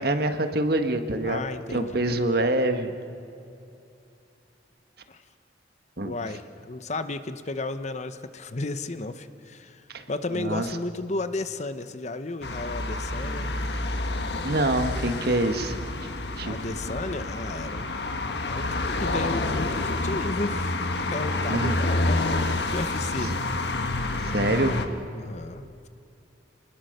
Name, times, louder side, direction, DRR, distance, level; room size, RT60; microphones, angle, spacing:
voice 1, 0.0-1.4 1.7-2.9 6.0-6.1 9.9-10.0 10.3-10.7 14.4-15.8 16.4-16.6 21.5-21.8 23.2-23.4 24.3-24.8, right 1 dB, 60° right, 7 dB, 1.5 m, -25 dB
voice 2, 1.2-2.0 5.1-5.2 6.0-13.5 16.4-17.9 18.5-22.3 22.7-23.3 25.1-25.9, left 2 dB, 40° left, 11 dB, 0.9 m, -34 dB
sound 1, 12.4-24.9, left 2 dB, 65° left, 1.5 m, -28 dB
28.0 x 20.5 x 6.7 m, 2.6 s
head